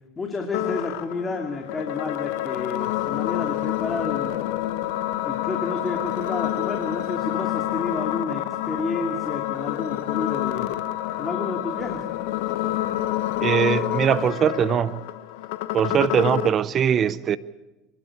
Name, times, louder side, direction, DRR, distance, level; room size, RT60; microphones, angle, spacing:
voice 1, 0.2-4.4 5.2-10.7 11.2-12.0, left 3 dB, 20° left, 2.4 m, -31 dB
sound 1, 0.5-16.5, left 14 dB, 80° left, 1.2 m, -28 dB
voice 2, 13.4-15.0 15.7-17.4, right 8 dB, 40° right, 0.6 m, -21 dB
26.0 x 12.0 x 8.7 m
supercardioid pair, 105°, 0 cm